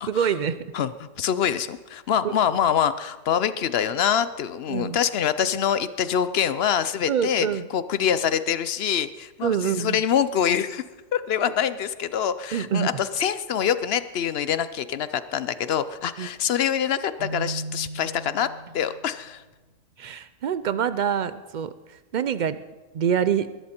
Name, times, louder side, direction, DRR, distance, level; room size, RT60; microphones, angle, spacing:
voice 1, 0.1-0.6 4.7-5.0 7.1-7.7 9.4-10.0 12.5-12.9 16.2-16.3 20.0-21.7 22.1-22.6 22.9-23.5, right 8 dB, 70° right, 14 dB, 0.4 m, -25 dB
voice 2, 0.7-10.8 11.1-18.5 18.7-19.4, left 8 dB, 60° left, 14 dB, 0.7 m, -25 dB
Keyboard (musical), 17.2-19.0, right 2 dB, 55° right, 1.4 m, -36 dB
21.0 x 11.5 x 4.4 m, 1.2 s
omnidirectional pair, 1.4 m